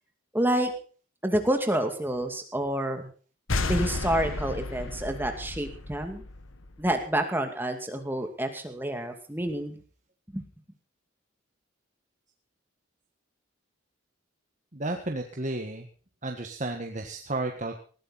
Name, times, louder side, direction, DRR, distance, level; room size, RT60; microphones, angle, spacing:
voice 1, 0.3-0.7 1.2-3.1 3.6-6.2 6.8-9.8 10.3-10.4, right 1 dB, 10° right, 5 dB, 2.4 m, -28 dB
sound 1, 3.5-7.0, left 2 dB, 85° left, 1.5 m, -32 dB
voice 2, 14.7-15.9 16.2-17.8, right 2 dB, 40° right, 3 dB, 1.6 m, -32 dB
20.0 x 14.5 x 4.2 m, 0.40 s
head